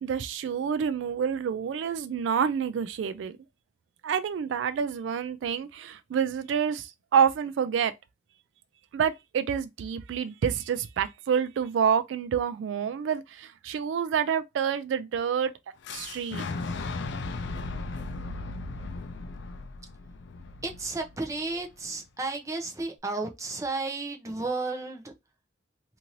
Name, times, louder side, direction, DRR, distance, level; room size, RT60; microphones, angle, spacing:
voice 1, 0.0-3.4 4.0-7.9 8.9-15.5 15.9-16.4, right 7 dB, 80° right, 0.3 m, -28 dB
Fire / Explosion, 15.8-21.7, left 3 dB, 70° left, 0.4 m, -36 dB
voice 2, 20.6-25.1, right 3 dB, 15° right, 0.6 m, -33 dB
2.7 x 2.6 x 2.9 m
head